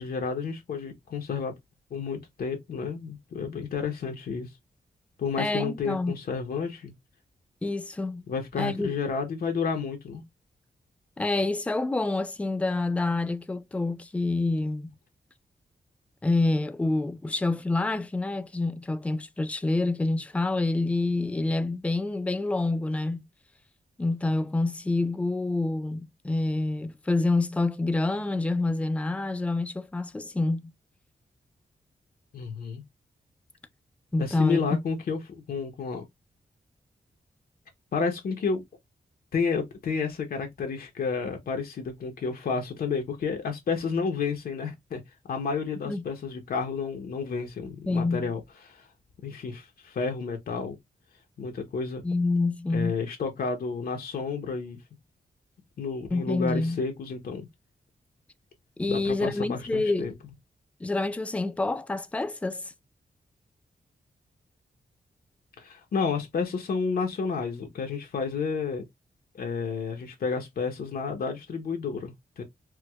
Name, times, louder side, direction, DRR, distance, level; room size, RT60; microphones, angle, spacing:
voice 1, 0.0-1.5 1.9-4.5 5.2-6.9 8.3-10.2 32.3-32.8 34.2-36.0 37.9-38.6 39.3-45.0 45.3-48.4 48.7-48.9 49.2-50.8 51.4-52.0 52.7-54.8 55.8-57.5 58.9-60.1 65.6-68.8 69.3-72.4, left 5 dB, 70° left, 0.7 m, -31 dB
voice 2, 5.4-6.2 7.6-8.3 8.6-8.9 11.2-14.9 16.2-23.3 24.0-30.7 34.1-34.8 45.8-46.0 47.9-48.3 52.0-53.0 56.1-56.8 58.8-60.1 60.8-62.7, left 2 dB, 10° left, 0.3 m, -27 dB
4.5 x 2.1 x 2.2 m
wide cardioid pair, 145°, 16 cm